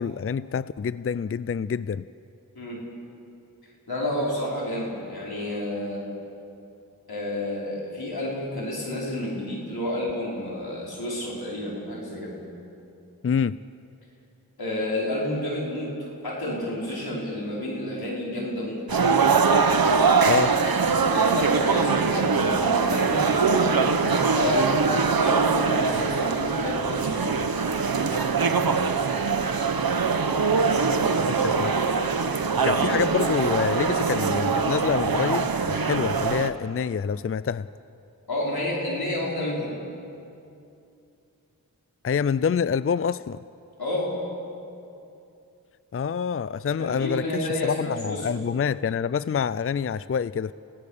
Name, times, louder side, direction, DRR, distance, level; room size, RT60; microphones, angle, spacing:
voice 1, 0.0-2.1 13.2-13.6 20.3-20.5 31.2-31.7 32.6-37.7 42.0-43.4 45.9-50.5, left 6 dB, 40° left, 17 dB, 0.4 m, -27 dB
voice 2, 3.9-6.0 7.1-12.4 14.6-15.9 16.2-18.9 21.1-23.9 24.3-24.8 25.1-27.4 32.9-33.0 38.3-39.7 43.8-44.2 46.8-48.4, left 1 dB, 90° left, -4 dB, 5.4 m, -30 dB
sound 1, 18.9-36.5, right 5 dB, 75° right, 1.1 m, -22 dB
29.5 x 17.5 x 6.8 m, 2.6 s
wide cardioid pair, 45°, 36 cm